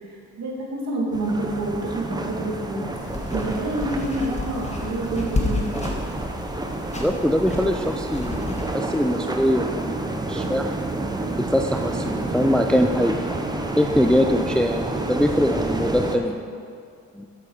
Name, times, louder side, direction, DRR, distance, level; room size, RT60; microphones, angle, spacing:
voice 1, 0.0-2.8 3.3-5.6, right 2 dB, 60° right, -3 dB, 2.6 m, -28 dB
sound 1, 1.1-16.2, right 2 dB, 15° right, 0.8 m, -29 dB
sound 2, 2.9-8.6, left 2 dB, 20° left, 1.5 m, -31 dB
voice 2, 7.0-8.5 8.7-10.7 11.4-13.2 13.8-16.4 17.1-17.3, equal, 5° left, 4 dB, 0.5 m, -22 dB
7.9 x 7.7 x 5.7 m, 2.3 s
cardioid pair, 90°, 30 cm